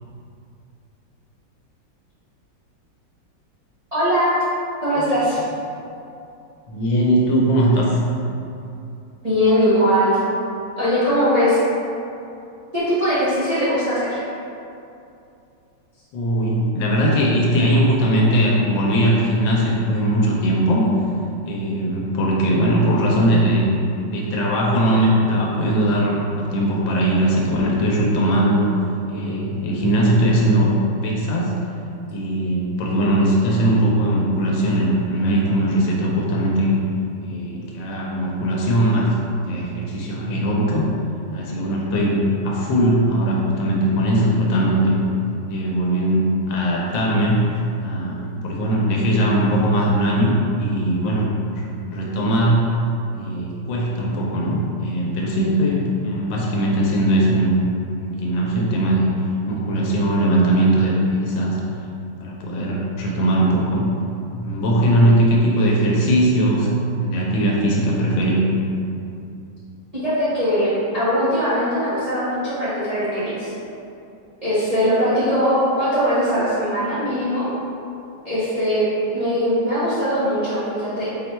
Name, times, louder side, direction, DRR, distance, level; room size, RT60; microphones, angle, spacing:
voice 1, 3.9-4.3 4.8-5.4 9.2-10.2 10.8-11.6 12.7-14.2 69.9-73.5 74.4-77.5 78.2-81.1, equal, 55° right, -12 dB, 0.4 m, -20 dB
voice 2, 6.7-8.0 16.1-20.9 21.4-23.7 24.1-28.7 29.1-31.5 32.1-36.8 37.2-39.2 39.5-40.9 41.3-42.2 42.4-45.0 45.5-52.8 53.1-57.6 58.0-59.1 59.5-61.6 62.2-63.8 64.3-68.4, right 1 dB, 85° left, -3 dB, 1.4 m, -20 dB
4.3 x 2.2 x 4.1 m, 2.7 s
omnidirectional pair, 2.1 m